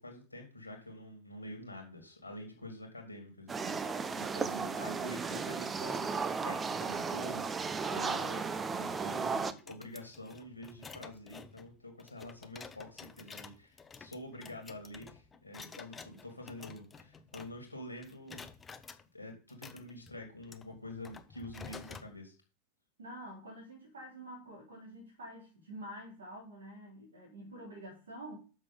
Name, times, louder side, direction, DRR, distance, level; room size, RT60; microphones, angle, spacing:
voice 1, 0.0-18.5 19.1-22.3, left 1 dB, 80° left, 2.2 m, -47 dB
sound 1, 3.5-9.5, right 5 dB, 15° right, 0.7 m, -35 dB
sound 2, 9.5-17.8 18.0-19.0 19.5-22.1, left 5 dB, 15° left, 0.8 m, -51 dB
voice 2, 23.0-28.4, right 1 dB, 70° right, 3.4 m, -47 dB
7.6 x 6.2 x 5.5 m
figure-of-eight pair, 90°, 0 cm